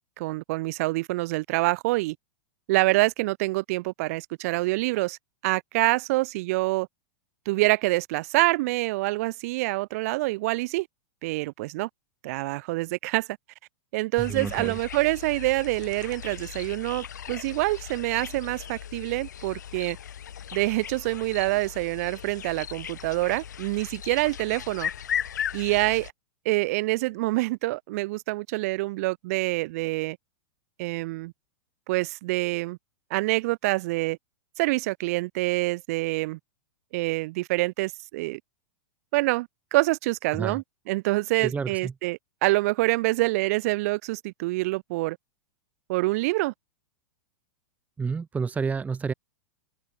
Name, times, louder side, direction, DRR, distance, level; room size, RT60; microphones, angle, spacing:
voice 1, 0.2-2.2 2.7-6.9 7.5-10.9 11.2-11.9 12.2-13.3 13.9-20.0 20.5-24.9 25.5-26.1 26.5-30.2 30.8-31.3 31.9-32.8 33.1-34.2 34.6-36.4 36.9-38.4 39.1-45.2 45.9-46.5, right 21 dB, 55° right, 2.1 m, -26 dB
sound 1, 14.2-26.1, left 9 dB, 70° left, 3.0 m, -37 dB
voice 2, 14.3-14.8 40.4-40.6 41.4-41.9 48.0-49.1, right 5 dB, 15° right, 1.4 m, -30 dB
open air
hypercardioid pair, 100°, 10 cm